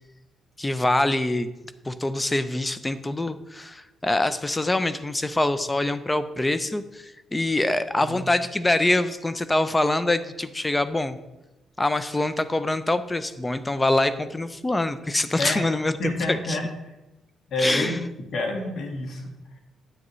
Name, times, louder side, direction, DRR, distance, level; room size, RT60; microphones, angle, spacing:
voice 1, 0.6-1.5 1.8-11.2 11.8-16.0 16.5-16.6 17.6-18.0 18.6-18.7, left 2 dB, 15° left, 12 dB, 0.6 m, -24 dB
voice 2, 16.0-16.6 17.5-17.9 18.3-19.3, left 2 dB, 65° left, 2 dB, 1.8 m, -28 dB
9.7 x 8.7 x 3.1 m, 1.0 s
cardioid pair, 90°, 0 cm